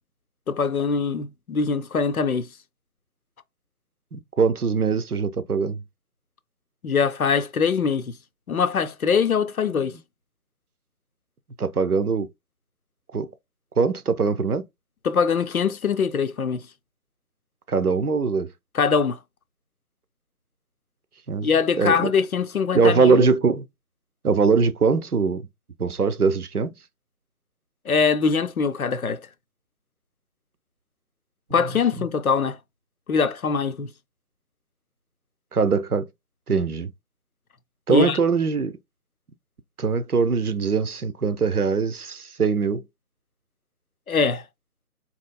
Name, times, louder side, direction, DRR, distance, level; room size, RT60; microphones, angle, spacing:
voice 1, 0.5-2.5 6.8-8.2 8.5-10.0 15.0-16.6 18.7-19.2 21.4-23.3 27.9-29.2 31.5-32.6 33.1-33.9 37.9-38.2 44.1-44.4, left 5 dB, 65° left, 0.6 m, -22 dB
voice 2, 4.1-5.8 9.7-10.0 11.6-12.3 13.1-13.3 13.8-14.7 17.7-18.5 21.3-21.5 21.8-22.1 22.7-23.6 24.2-25.5 25.8-26.7 35.5-36.1 36.5-36.9 37.9-38.8 39.8-42.8, right 5 dB, 70° right, 0.7 m, -22 dB
4.1 x 3.0 x 2.2 m
figure-of-eight pair, 160°, 46 cm